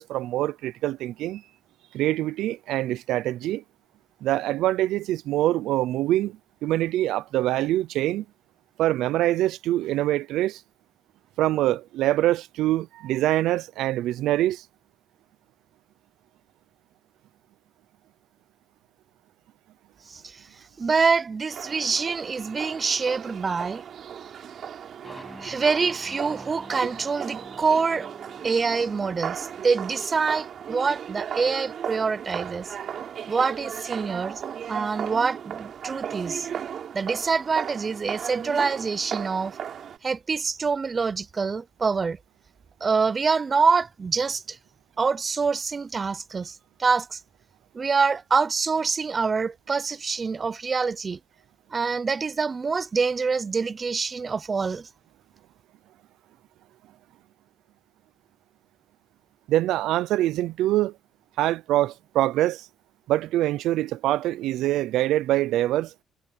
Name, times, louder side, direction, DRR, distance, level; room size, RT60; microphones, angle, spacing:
voice 1, 0.0-1.4 1.9-3.6 4.2-8.2 8.8-10.6 11.4-14.6 59.5-61.0 61.4-62.7 63.1-65.9, right 14 dB, 90° right, 0.5 m, -24 dB
voice 2, 20.1-20.4 20.8-23.8 25.4-28.1 28.4-32.7 33.3-34.4 34.7-36.5 36.9-39.6 40.0-42.2 42.8-44.6 45.0-47.2 47.7-51.2 51.7-54.9, right 5 dB, 35° right, 0.6 m, -25 dB
sound 1, 21.5-40.0, right 8 dB, 65° right, 3.7 m, -36 dB
sound 2, 25.0-30.8, left 1 dB, 5° left, 7.5 m, -48 dB
cardioid pair, 90°, 0 cm